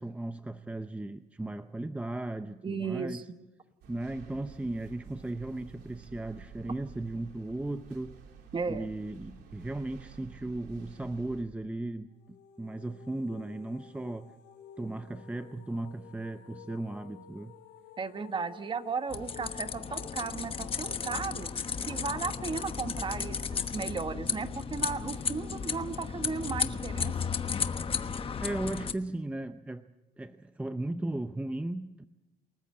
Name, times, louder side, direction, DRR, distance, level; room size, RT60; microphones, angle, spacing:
voice 1, 0.0-3.2 3.9-8.1 8.7-14.3 14.8-17.5 28.4-29.9 30.2-32.1, right 2 dB, 10° right, 10 dB, 0.6 m, -36 dB
voice 2, 2.6-3.2 8.5-8.9 18.0-27.1, right 5 dB, 30° right, 9 dB, 1.4 m, -35 dB
sound 1, 3.8-11.4, right 6 dB, 80° right, 3.3 m, -51 dB
sound 2, 12.1-25.0, left 8 dB, 85° left, 3.2 m, -53 dB
sound 3, 19.1-28.9, left 6 dB, 35° left, 1.1 m, -34 dB
28.5 x 14.0 x 7.6 m, 1.0 s
cardioid pair, 110°, 17 cm